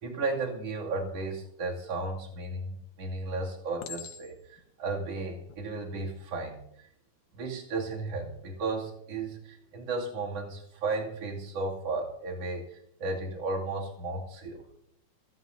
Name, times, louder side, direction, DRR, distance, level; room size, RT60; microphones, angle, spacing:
voice 1, 0.0-6.9 7.3-14.6, right 3 dB, 50° right, -2 dB, 3.5 m, -34 dB
Chink clink, 2.3-2.8 3.8-4.6 5.3-5.6, left 8 dB, 85° left, 2.7 m, -44 dB
29.0 x 12.0 x 2.7 m, 0.71 s
omnidirectional pair, 3.7 m